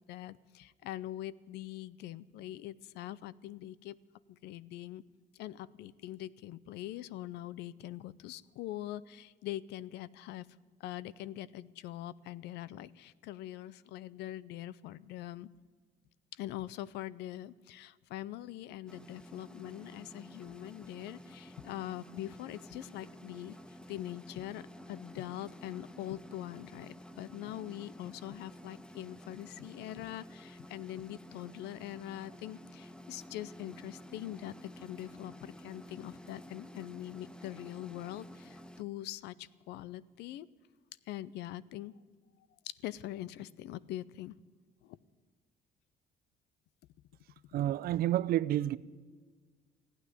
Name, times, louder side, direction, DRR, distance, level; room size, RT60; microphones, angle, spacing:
voice 1, 0.0-4.0 4.3-5.0 5.3-10.5 10.8-15.5 16.3-23.6 23.9-40.5 41.1-41.9 42.6-44.3 44.8-45.0, left 14 dB, 80° left, 0.6 m, -43 dB
sound 1, 18.9-38.8, equal, 5° left, 0.7 m, -51 dB
voice 2, 47.5-48.8, right 13 dB, 65° right, 0.5 m, -29 dB
15.5 x 9.3 x 9.8 m
cardioid pair, 110°, 17 cm